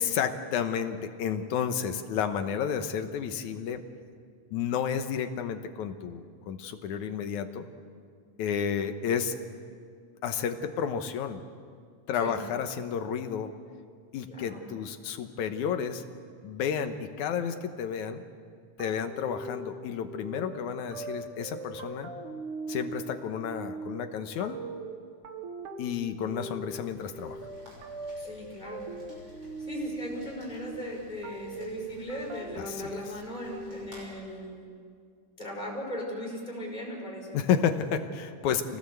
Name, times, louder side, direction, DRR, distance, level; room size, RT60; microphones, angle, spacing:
voice 1, 0.0-3.8 4.5-7.7 8.4-9.3 10.2-11.4 12.1-13.5 14.1-16.0 16.4-18.2 18.8-22.1 22.7-24.6 25.8-27.4 32.6-33.0 37.3-38.8, left 7 dB, 70° left, 8 dB, 2.4 m, -31 dB
voice 2, 14.3-14.6 28.2-28.9 29.6-34.7 35.4-37.4, left 1 dB, 15° left, -3 dB, 6.0 m, -38 dB
sound 1, 18.8-34.2, right 2 dB, 70° right, 3.0 m, -41 dB
Rain, 26.9-34.0, equal, 30° right, 7.1 m, -53 dB
26.0 x 18.0 x 8.0 m, 2.1 s
omnidirectional pair, 3.7 m